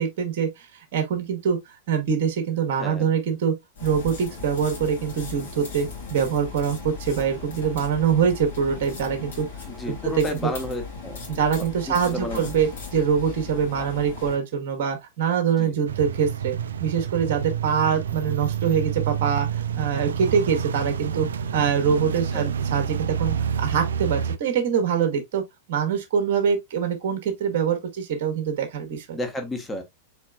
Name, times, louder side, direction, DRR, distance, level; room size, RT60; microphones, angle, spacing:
voice 1, 0.0-1.6 1.9-3.5 3.8-9.5 9.9-10.4 11.3-21.3 21.5-25.4 25.7-29.2, right 7 dB, 50° right, 1.3 m, -24 dB
sound 1, 3.7-14.4, left 4 dB, 65° left, 2.3 m, -37 dB
voice 2, 9.7-11.2 11.9-12.4 15.6-15.7 22.3-22.5 29.1-29.8, left 1 dB, 10° left, 1.3 m, -32 dB
sound 2, 15.9-24.4, right 7 dB, 65° right, 0.4 m, -28 dB
4.4 x 4.3 x 2.3 m
figure-of-eight pair, 95°, 0 cm